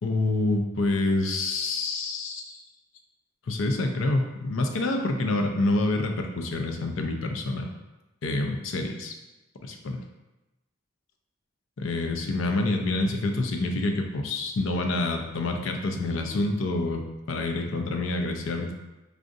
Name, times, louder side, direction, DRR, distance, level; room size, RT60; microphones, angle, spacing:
voice 1, 0.0-2.6 3.5-7.7 8.2-9.1 9.6-10.0 11.8-17.0 17.3-18.7, left 2 dB, 90° left, 4 dB, 0.5 m, -27 dB
4.8 x 2.5 x 2.6 m, 1.0 s
head